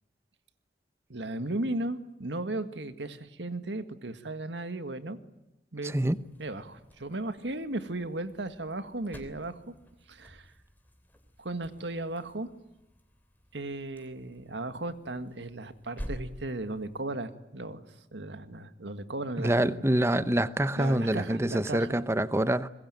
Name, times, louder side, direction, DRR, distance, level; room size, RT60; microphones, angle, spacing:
voice 1, 1.1-5.2 5.7-6.0 6.4-9.7 10.1-10.5 11.4-12.5 13.5-17.8 18.1-19.9 20.8-22.0, right 2 dB, 85° right, 1.9 m, -36 dB
voice 2, 5.8-6.2 19.4-22.7, right 1 dB, 15° right, 0.9 m, -26 dB
sound 1, 5.9-17.0, equal, 10° left, 3.2 m, -49 dB
26.0 x 22.0 x 9.1 m
head